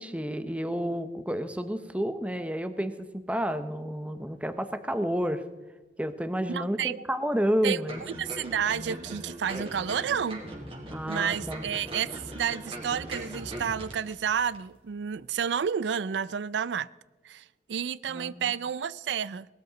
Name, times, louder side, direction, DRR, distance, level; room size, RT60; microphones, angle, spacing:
voice 1, 0.0-5.5 6.0-8.0 10.9-11.6 18.1-18.4, equal, 10° right, 0.8 m, -30 dB
voice 2, 6.5-7.0 7.6-7.8 8.2-10.4 11.1-16.9 17.2-19.5, right 7 dB, 90° right, 0.4 m, -30 dB
sound 1, 7.9-14.2 14.5-14.6, right 1 dB, 35° right, 3.4 m, -40 dB
19.0 x 13.0 x 4.0 m
head